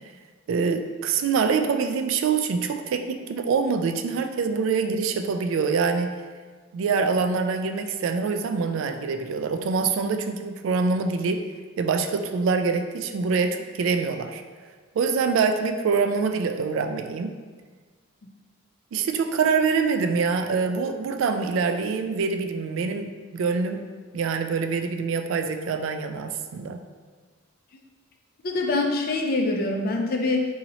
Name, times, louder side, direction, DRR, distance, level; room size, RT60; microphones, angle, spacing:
voice 1, 0.5-6.1 6.7-11.4 11.8-14.4 15.0-17.3 18.9-23.8 24.1-26.8, right 5 dB, 70° right, 7 dB, 0.3 m, -25 dB
voice 2, 28.4-30.4, left 2 dB, 45° left, 2 dB, 0.4 m, -24 dB
2.8 x 2.7 x 4.0 m, 1.5 s
head